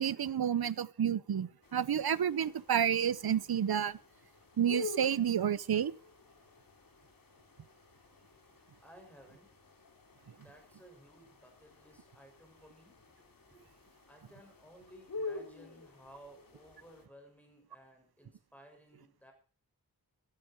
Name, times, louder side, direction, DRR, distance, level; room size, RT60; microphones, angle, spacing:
voice 1, 0.0-4.0 4.6-5.9, right 9 dB, 75° right, 0.7 m, -30 dB
sound 1, 1.6-17.1, left 3 dB, 65° left, 2.6 m, -48 dB
voice 2, 8.8-9.5 10.3-13.6 14.1-19.3, equal, 5° left, 6.3 m, -58 dB
16.5 x 13.0 x 4.5 m
wide cardioid pair, 85°, 37 cm